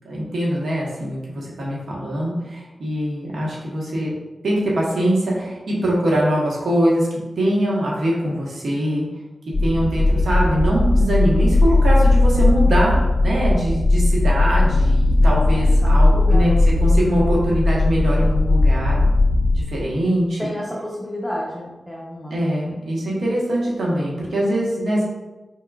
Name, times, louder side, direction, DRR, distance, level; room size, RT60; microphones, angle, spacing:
voice 1, 0.0-4.1 4.4-7.1 7.4-9.1 9.6-19.0 19.7-20.5 22.3-25.0, right 1 dB, 85° right, -4 dB, 1.1 m, -22 dB
sound 1, 9.5-19.6, left 2 dB, 55° left, 0.7 m, -17 dB
voice 2, 15.8-16.4 20.4-22.3, equal, ahead, -6 dB, 0.9 m, -30 dB
4.5 x 3.6 x 2.4 m, 1.1 s
cardioid pair, 50°, 0 cm